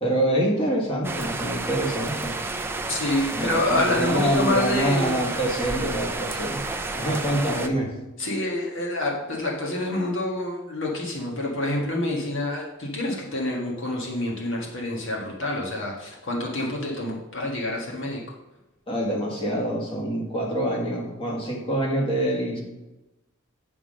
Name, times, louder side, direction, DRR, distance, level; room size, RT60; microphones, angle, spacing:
voice 1, 0.0-2.3 3.3-6.6 6.9-7.9 18.9-22.6, right 1 dB, 25° left, -3 dB, 1.8 m, -26 dB
sound 1, 1.0-7.7, right 2 dB, 10° right, 0.4 m, -31 dB
voice 2, 2.9-5.2 8.2-18.2, left 1 dB, 60° left, -2 dB, 1.6 m, -27 dB
9.3 x 3.7 x 6.4 m, 1.0 s
head